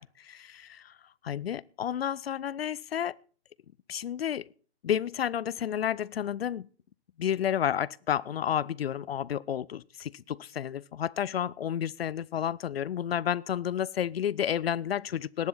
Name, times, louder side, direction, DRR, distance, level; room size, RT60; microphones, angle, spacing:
voice 1, 0.2-0.9 1.2-3.2 3.9-4.5 4.8-6.7 7.2-15.5, left 9 dB, 60° left, 0.5 m, -31 dB
18.0 x 10.5 x 4.1 m
figure-of-eight pair, 125°, 33 cm